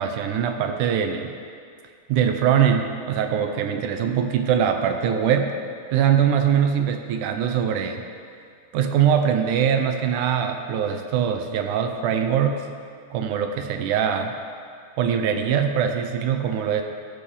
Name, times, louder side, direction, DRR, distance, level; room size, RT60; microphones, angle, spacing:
voice 1, 0.0-1.3 2.1-5.5 5.9-8.0 8.7-12.6 13.1-14.4 15.0-16.8, right 8 dB, 85° right, 5 dB, 2.2 m, -22 dB
15.0 x 6.2 x 5.5 m, 2.2 s
omnidirectional pair, 3.5 m